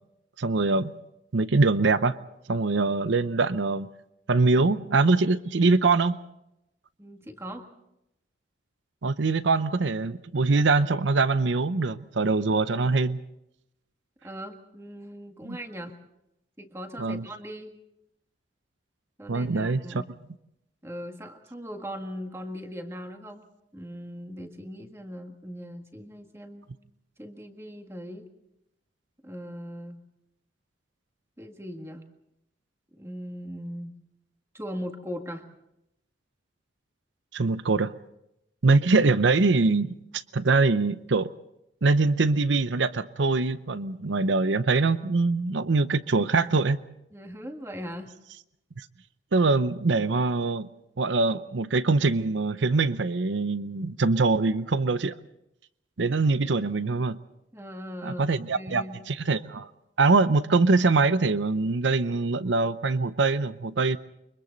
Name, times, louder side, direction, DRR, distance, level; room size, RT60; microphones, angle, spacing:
voice 1, 0.4-0.9 1.3-2.2 2.5-3.9 4.3-6.2 9.0-13.2 15.4-15.6 17.0-17.3 19.3-19.8 37.3-37.9 38.6-41.3 41.8-46.8 49.3-50.7 51.0-55.1 56.0-57.2 58.0-59.7 60.0-64.0, right 3 dB, 80° right, 14 dB, 0.7 m, -23 dB
voice 2, 7.0-7.7 14.2-16.0 16.6-17.7 19.2-20.1 20.8-23.4 23.7-26.7 27.2-28.3 29.2-30.0 31.4-32.0 32.9-33.9 34.5-35.5 47.1-48.1 57.5-59.0, equal, 15° right, 4 dB, 1.8 m, -39 dB
29.5 x 24.0 x 4.0 m, 0.84 s
head